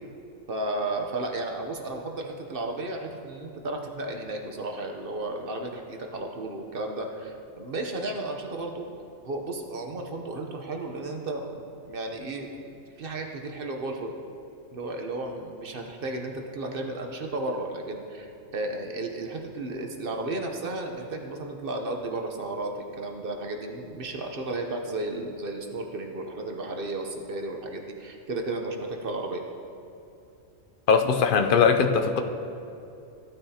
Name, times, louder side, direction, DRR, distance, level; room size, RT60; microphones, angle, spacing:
voice 1, 0.5-8.9 9.2-14.1 14.7-29.4, right 2 dB, 50° right, 2 dB, 0.9 m, -33 dB
voice 2, 30.9-32.2, left 6 dB, 55° left, 5 dB, 0.6 m, -20 dB
15.5 x 9.0 x 2.8 m, 2.7 s
omnidirectional pair, 1.4 m